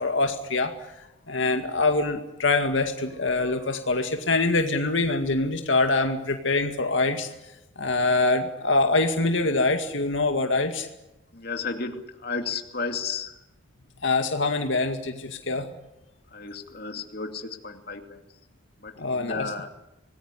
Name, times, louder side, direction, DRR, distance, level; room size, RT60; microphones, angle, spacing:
voice 1, 0.0-7.3 7.8-10.9 14.0-15.7 19.0-19.5, left 3 dB, 80° left, 5 dB, 2.1 m, -24 dB
voice 2, 11.3-13.4 16.3-18.2 18.8-19.7, left 4 dB, 55° left, 5 dB, 2.6 m, -33 dB
26.5 x 19.5 x 9.8 m, 0.95 s
head